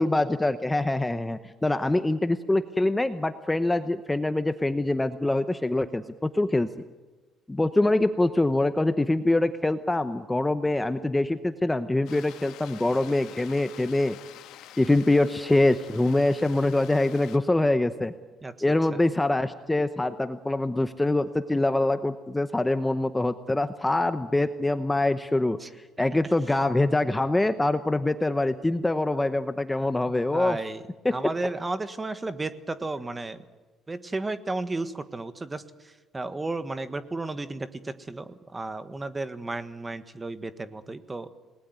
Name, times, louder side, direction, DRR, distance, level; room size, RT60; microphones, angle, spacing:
voice 1, 0.0-6.7 7.5-14.2 14.8-18.1 18.6-25.6 26.0-30.6 31.0-31.2, left 2 dB, 10° left, 10 dB, 0.9 m, -24 dB
sound 1, 12.1-17.4, left 12 dB, 85° left, 1.8 m, -47 dB
voice 2, 30.1-30.8 31.1-33.4 33.9-35.6 36.1-41.3, right 2 dB, 15° right, 12 dB, 1.4 m, -33 dB
28.5 x 20.0 x 9.5 m, 1.2 s
cardioid pair, 150°, 0 cm